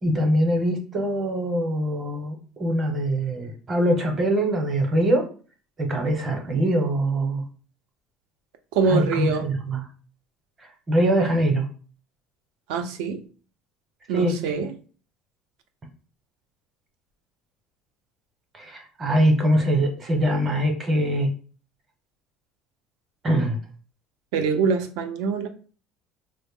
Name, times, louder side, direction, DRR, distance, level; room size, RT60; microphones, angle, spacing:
voice 1, 0.0-5.2 5.8-7.5 8.9-9.8 10.9-11.6 14.1-14.3 18.5-21.3 23.2-23.6, right 1 dB, 20° right, 3 dB, 0.8 m, -23 dB
voice 2, 8.7-9.5 12.7-13.2 14.1-14.7 24.3-25.5, right 5 dB, 80° right, 7 dB, 0.5 m, -24 dB
3.9 x 2.0 x 3.5 m, 0.38 s
cardioid pair, 165°, 0 cm